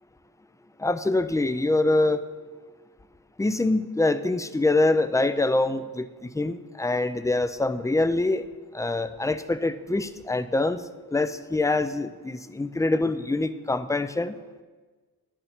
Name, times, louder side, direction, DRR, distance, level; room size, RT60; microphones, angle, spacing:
voice 1, 0.8-2.2 3.4-6.1 6.3-8.5 8.7-10.8 11.1-14.3, left 2 dB, 10° left, 12 dB, 0.3 m, -24 dB
10.0 x 6.9 x 5.8 m, 1.4 s
wide cardioid pair, 130°, 36 cm